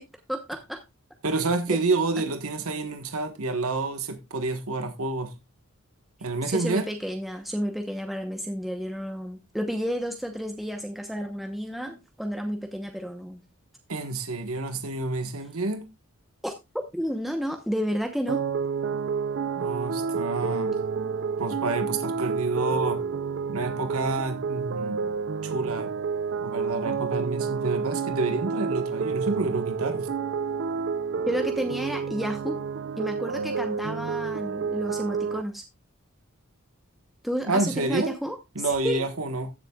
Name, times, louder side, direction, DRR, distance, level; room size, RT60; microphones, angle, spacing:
voice 1, 0.3-0.8 1.7-1.8 6.5-13.4 16.4-16.5 16.9-18.4 31.3-32.6 33.0-35.6 37.2-39.1, equal, ahead, 0.9 m, -31 dB
voice 2, 1.2-5.3 6.2-6.9 13.9-15.8 19.6-20.8 21.4-23.1 23.5-25.1 25.4-25.9 26.4-30.1 37.5-38.1 38.5-39.5, right 3 dB, 70° right, 1.3 m, -28 dB
sound 1, 18.3-35.4, right 5 dB, 55° right, 0.5 m, -29 dB
15.0 x 7.4 x 2.4 m
head